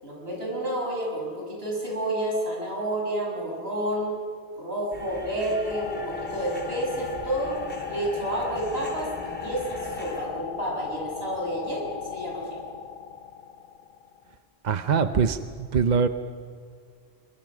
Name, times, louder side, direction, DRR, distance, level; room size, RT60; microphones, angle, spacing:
voice 1, 0.0-4.1 4.5-7.6 7.9-12.6, right 1 dB, 75° right, -2 dB, 6.4 m, -30 dB
sound 1, 4.9-10.2, right 1 dB, 10° left, 3.5 m, -40 dB
sound 2, 5.7-14.3, left 8 dB, 50° left, 2.0 m, -37 dB
voice 2, 14.6-16.1, right 6 dB, 50° right, 10 dB, 0.8 m, -23 dB
23.5 x 23.0 x 6.1 m, 2.2 s
omnidirectional pair, 1.1 m